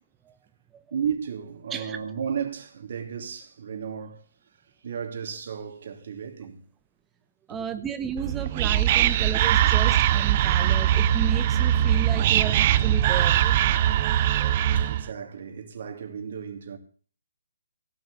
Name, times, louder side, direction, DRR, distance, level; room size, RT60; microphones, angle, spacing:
voice 1, 0.9-4.3 4.8-6.7 7.5-7.6 9.0-9.1 14.7-16.8, right 7 dB, 55° right, 2.9 m, -34 dB
voice 2, 7.5-14.9, right 7 dB, 15° right, 1.0 m, -34 dB
Whispering, 8.2-15.1, right 11 dB, 35° right, 0.7 m, -21 dB
17.0 x 6.0 x 8.1 m
figure-of-eight pair, 135°, 0 cm